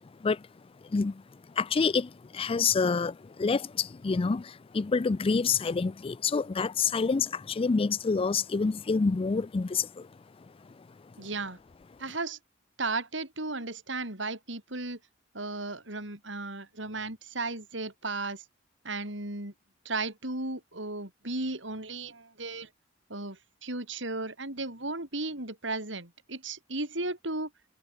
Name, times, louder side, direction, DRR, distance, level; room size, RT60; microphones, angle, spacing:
voice 1, 1.6-2.1 2.3-3.1 3.4-4.4 4.7-9.9, left 4 dB, 30° left, 0.4 m, -27 dB
voice 2, 11.2-11.6 12.0-12.4 12.8-15.0 15.3-18.4 18.8-19.5 19.8-22.7 23.1-27.5, right 2 dB, 70° right, 6.3 m, -35 dB
head